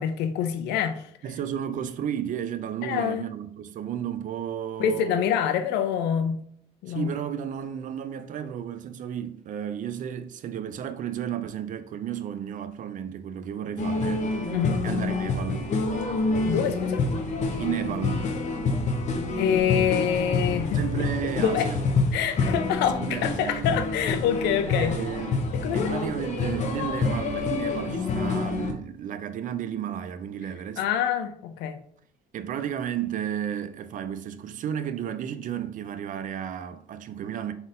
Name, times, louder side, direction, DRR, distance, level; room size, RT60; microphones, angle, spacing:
voice 1, 0.0-1.0 2.8-3.2 4.8-6.4 6.8-7.1 14.5-14.8 16.5-17.1 19.4-20.8 21.4-21.7 22.1-25.0 25.5-25.9 30.8-31.8, left 8 dB, 85° left, 0.5 m, -26 dB
voice 2, 1.2-5.3 6.9-14.3 14.8-15.7 17.6-18.3 20.7-21.8 22.9-23.6 24.7-25.4 25.7-30.8 32.3-37.5, right 9 dB, 50° right, 0.4 m, -33 dB
sound 1, 13.8-28.7, left 3 dB, 45° left, 0.7 m, -27 dB
3.9 x 3.9 x 2.5 m
cardioid pair, 110°, 17 cm